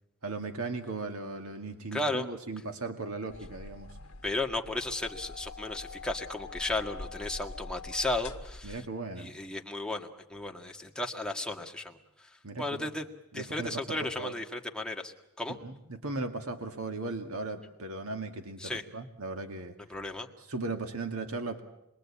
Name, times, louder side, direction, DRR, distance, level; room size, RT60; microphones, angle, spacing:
voice 1, 0.2-4.0 8.6-9.3 12.4-12.9 13.3-14.3 15.6-19.8 20.5-21.6, right 3 dB, 70° right, 5 dB, 2.2 m, -37 dB
voice 2, 1.9-2.3 4.2-8.8 9.2-13.1 13.3-15.6 18.6-18.8 19.9-20.3, left 2 dB, 5° left, 2 dB, 1.9 m, -34 dB
sound 1, 3.3-8.8, left 3 dB, 70° left, 1.5 m, -44 dB
27.0 x 22.5 x 8.6 m, 0.84 s
head